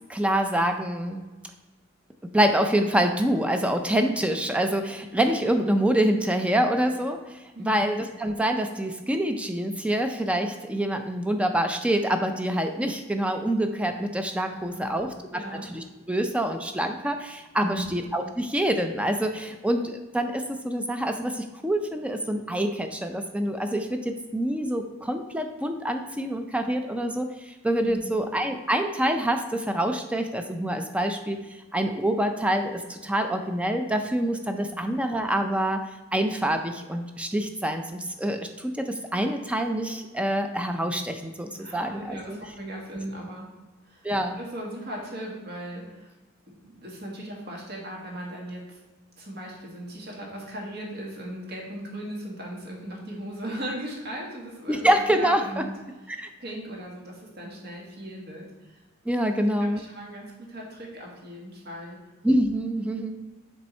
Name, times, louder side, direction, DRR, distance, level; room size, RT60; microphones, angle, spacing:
voice 1, 0.1-1.2 2.3-15.4 15.7-31.4 31.7-35.8 36.1-42.4 44.0-44.4 54.7-55.6 56.2-56.3 59.1-59.8 62.2-63.2, right 1 dB, 5° right, 6 dB, 0.4 m, -26 dB
voice 2, 14.5-15.7 17.6-17.9 27.8-28.2 34.6-34.8 41.6-43.5 43.8-44.1 44.4-46.1 46.6-48.8 49.2-55.7 56.1-58.8 59.4-62.0, right 1 dB, 55° right, -2 dB, 1.8 m, -38 dB
7.0 x 3.5 x 4.3 m, 1.2 s
head